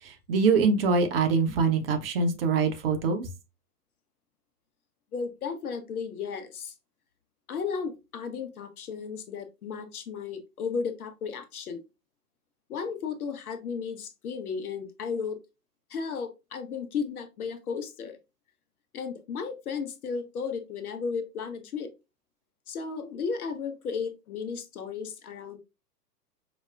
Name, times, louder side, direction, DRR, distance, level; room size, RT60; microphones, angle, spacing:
voice 1, 0.0-3.3, right 4 dB, 40° right, 0.6 m, -24 dB
voice 2, 5.1-6.7 7.5-11.8 12.7-15.4 15.9-18.2 18.9-21.9 22.7-25.6, left 5 dB, 60° left, 0.8 m, -34 dB
5.0 x 2.0 x 2.3 m
figure-of-eight pair, 115°, 49 cm